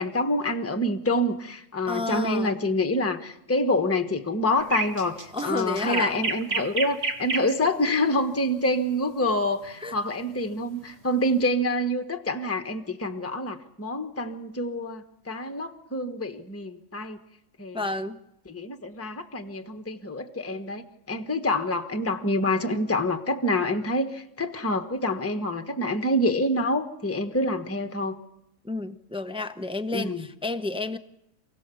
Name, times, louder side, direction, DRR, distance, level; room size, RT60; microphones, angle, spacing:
voice 1, 0.0-17.2 17.6-17.8 18.5-28.2 29.9-30.3, left 1 dB, 10° left, 7 dB, 1.2 m, -27 dB
voice 2, 1.9-2.6 5.3-6.3 9.8-10.0 17.7-18.2 28.6-31.0, left 2 dB, 5° right, 8 dB, 0.4 m, -31 dB
sound 1, 4.6-7.6 9.6-9.9, right 3 dB, 45° right, 2.0 m, -29 dB
27.5 x 17.5 x 7.0 m, 0.83 s
omnidirectional pair, 1.6 m